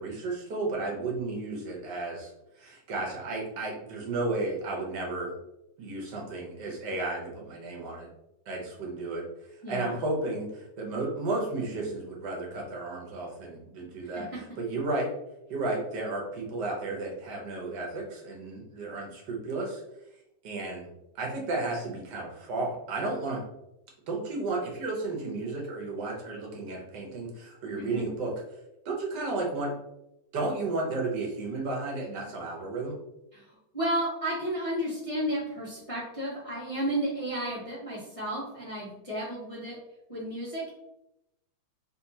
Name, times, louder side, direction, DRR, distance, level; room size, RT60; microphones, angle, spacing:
voice 1, 0.0-2.3 2.6-5.3 5.8-8.1 8.5-9.2 9.7-14.3 14.6-15.1 15.5-19.8 20.4-20.9 21.2-23.4 24.1-28.3 28.8-29.7 30.3-32.9, right 2 dB, 80° right, -1 dB, 1.5 m, -33 dB
voice 2, 9.6-9.9 14.0-14.3 27.8-28.1 33.3-33.4 33.7-39.8 40.1-40.6, right 1 dB, 30° left, -7 dB, 0.6 m, -32 dB
4.2 x 2.3 x 2.7 m, 0.86 s
omnidirectional pair, 1.8 m